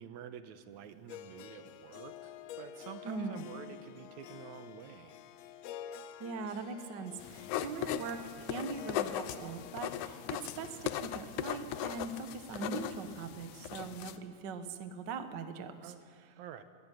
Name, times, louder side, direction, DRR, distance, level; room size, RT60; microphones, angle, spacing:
voice 1, 0.0-5.2 15.8-16.0 16.4-16.6, right 9 dB, 75° right, 10 dB, 2.2 m, -48 dB
Harp, 1.1-13.2, left 10 dB, 75° left, 1.8 m, -50 dB
voice 2, 3.0-3.4 6.2-15.9, right 4 dB, 55° right, 8 dB, 1.3 m, -41 dB
sound 1, 7.2-14.2, left 11 dB, 90° left, 2.2 m, -38 dB
21.5 x 15.0 x 9.2 m, 2.1 s
omnidirectional pair, 3.4 m